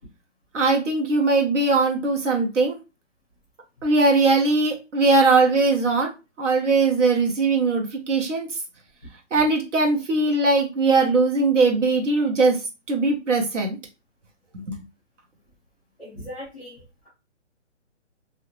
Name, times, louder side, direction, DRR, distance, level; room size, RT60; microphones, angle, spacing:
voice 1, 0.5-2.8 3.8-6.1 6.4-8.5 9.3-12.6 12.9-13.8 14.7-14.8, right 3 dB, 75° right, 1 dB, 1.1 m, -20 dB
voice 2, 16.0-17.1, equal, 5° right, -9 dB, 0.7 m, -39 dB
2.7 x 2.1 x 3.0 m, 0.28 s
hypercardioid pair, 175°, 37 cm